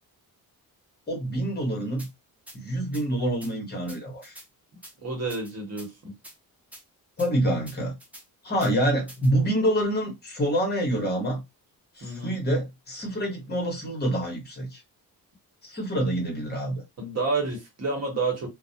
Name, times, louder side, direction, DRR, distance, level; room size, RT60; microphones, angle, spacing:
voice 1, 1.1-2.1 2.5-4.4 7.2-7.9 8.4-11.4 12.0-14.8 15.6-16.8, right 1 dB, 25° left, 1.0 m, -27 dB
sound 1, 2.0-2.1 2.5-2.6 2.9-3.0 3.4-3.5 3.9-4.5 4.8-4.9 5.3-5.9 6.2-6.4 6.7-6.8 7.2-7.3 7.7-8.2 8.6-8.7 9.1-9.3, right 1 dB, 5° right, 0.4 m, -46 dB
voice 2, 5.0-6.2 12.0-12.3 17.0-18.5, right 3 dB, 45° right, 1.1 m, -29 dB
2.3 x 2.1 x 2.7 m
wide cardioid pair, 150°, 35 cm